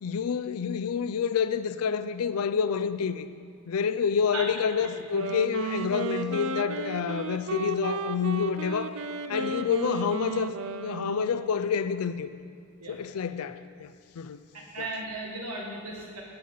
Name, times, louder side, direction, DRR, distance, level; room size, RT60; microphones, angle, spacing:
voice 1, 0.0-3.3 3.7-9.0 9.3-12.3 12.9-14.4 14.8-14.9, left 6 dB, 75° left, 13 dB, 0.4 m, -28 dB
Wind instrument woodwind instrument, 5.0-11.5, right 4 dB, 65° right, 0.5 m, -34 dB
voice 2, 14.5-16.2, right 2 dB, 80° right, -2 dB, 1.9 m, -36 dB
11.5 x 8.4 x 3.9 m, 2.1 s
head